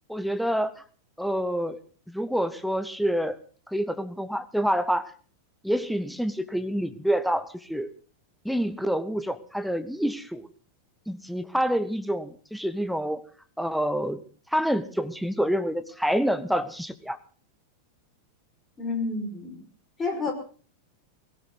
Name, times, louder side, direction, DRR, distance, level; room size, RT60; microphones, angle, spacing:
voice 1, 0.1-0.8 1.2-1.8 2.1-3.4 3.7-5.1 5.6-7.9 8.4-10.5 11.1-13.2 13.6-14.2 14.5-17.2, equal, ahead, 12 dB, 1.1 m, -27 dB
voice 2, 18.8-19.6 20.0-20.3, left 3 dB, 20° left, 4 dB, 5.4 m, -29 dB
19.5 x 17.5 x 4.0 m, 0.41 s
figure-of-eight pair, 90°, 0 cm